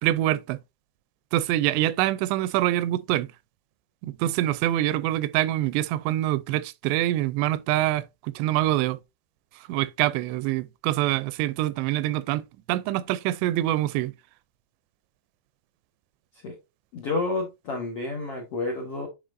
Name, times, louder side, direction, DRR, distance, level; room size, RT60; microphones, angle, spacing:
voice 1, 0.0-0.6 1.3-3.3 4.0-9.0 9.7-12.4 12.7-14.1, right 14 dB, 90° right, 2.7 m, -25 dB
voice 2, 16.9-19.1, left 3 dB, 65° left, 1.4 m, -30 dB
10.0 x 4.4 x 2.6 m
omnidirectional pair, 4.8 m